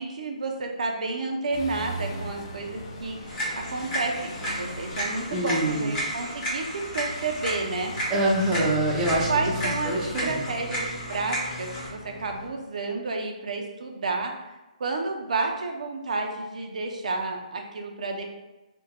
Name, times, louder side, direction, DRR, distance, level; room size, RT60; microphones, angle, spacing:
voice 1, 0.0-7.9 9.3-14.3 14.8-18.3, right 3 dB, 70° right, 2 dB, 0.5 m, -31 dB
sound 1, 1.5-12.5, left 2 dB, 35° left, 0.5 m, -38 dB
sound 2, 3.3-11.9, right 1 dB, 15° left, 0.8 m, -33 dB
voice 2, 5.3-5.9 8.1-9.3 9.8-10.4, right 1 dB, 10° right, -5 dB, 0.5 m, -25 dB
2.6 x 2.1 x 4.0 m, 1.1 s
hypercardioid pair, 160°, 4 cm